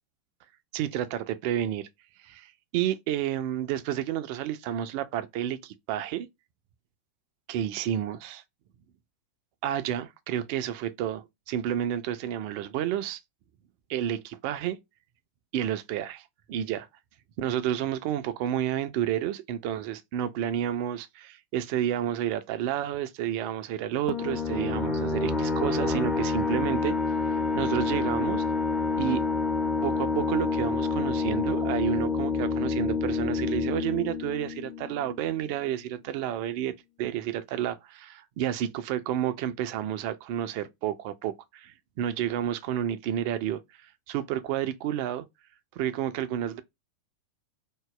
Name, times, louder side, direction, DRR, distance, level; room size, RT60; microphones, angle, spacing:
voice 1, 0.7-1.9 2.2-6.3 7.5-8.4 9.6-13.2 13.9-14.8 15.5-16.9 17.4-27.0 27.5-28.4 29.0-29.2 29.8-36.7 37.0-43.6 44.1-45.3 45.8-46.6, right 11 dB, 45° right, 0.4 m, -30 dB
sound 1, 24.1-35.4, left 4 dB, 15° left, 0.6 m, -28 dB
3.0 x 2.0 x 3.7 m
figure-of-eight pair, 90°, 0 cm